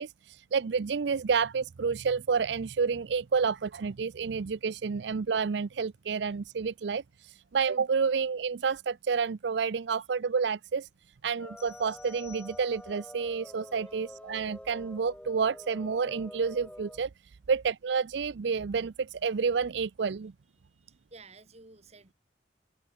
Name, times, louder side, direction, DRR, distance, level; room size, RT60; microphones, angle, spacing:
voice 1, 0.0-10.9 11.2-17.1 17.5-20.3, right 5 dB, 70° right, 0.5 m, -29 dB
sound 1, 11.4-17.0, equal, 5° left, 1.4 m, -47 dB
sound 2, 11.6-13.1, left 9 dB, 35° left, 6.9 m, -55 dB
voice 2, 20.6-22.1, right 3 dB, 35° right, 3.5 m, -54 dB
head